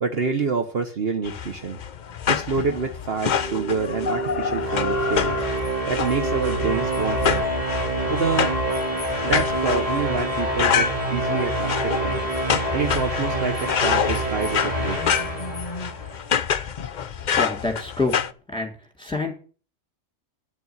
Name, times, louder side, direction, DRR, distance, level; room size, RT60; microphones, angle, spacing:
voice 1, 0.0-1.8 2.3-5.4 5.9-7.4 8.1-8.5 9.2-12.2 12.7-15.0, right 4 dB, 50° right, 5 dB, 1.3 m, -27 dB
sound 1, 1.2-18.3, left 7 dB, 50° left, 0.6 m, -27 dB
sound 2, 3.1-16.2, right 1 dB, 25° right, 2.8 m, -27 dB
voice 2, 17.4-18.2 18.5-18.7 19.0-19.3, left 3 dB, 5° left, 1 dB, 3.7 m, -26 dB
11.0 x 6.9 x 9.1 m, 0.39 s
omnidirectional pair, 1.4 m